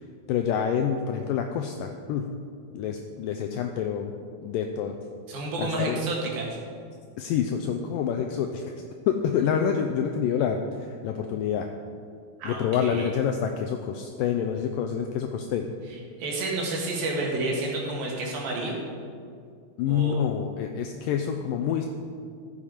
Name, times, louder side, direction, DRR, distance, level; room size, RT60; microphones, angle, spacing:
voice 1, 0.3-2.3 2.7-4.1 4.4-5.0 5.6-6.0 7.2-8.7 9.1-11.7 12.4-15.7 19.8-21.9, left 8 dB, 85° left, 4 dB, 2.0 m, -27 dB
voice 2, 5.3-6.5 12.4-13.1 15.9-18.8 19.9-20.2, right 2 dB, 70° right, -2 dB, 3.5 m, -30 dB
13.0 x 7.3 x 5.0 m, 2.2 s
omnidirectional pair, 4.4 m